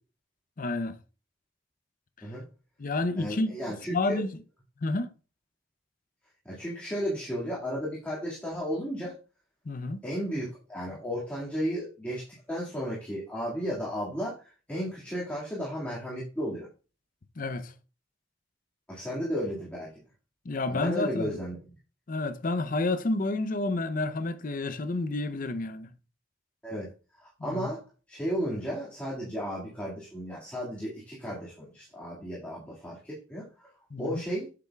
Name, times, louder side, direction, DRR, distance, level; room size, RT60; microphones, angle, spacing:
voice 1, 0.6-1.0 2.2-2.3 2.8-4.3 4.8-5.1 9.7-10.0 17.4-17.7 20.4-21.4 22.1-25.9 27.4-27.7 33.9-34.2, left 2 dB, 45° left, 0.6 m, -30 dB
voice 2, 3.2-4.3 6.5-9.1 10.0-16.7 18.9-19.9 20.7-21.6 26.6-33.7 34.0-34.5, equal, 10° left, 1.9 m, -34 dB
8.1 x 6.8 x 2.3 m
head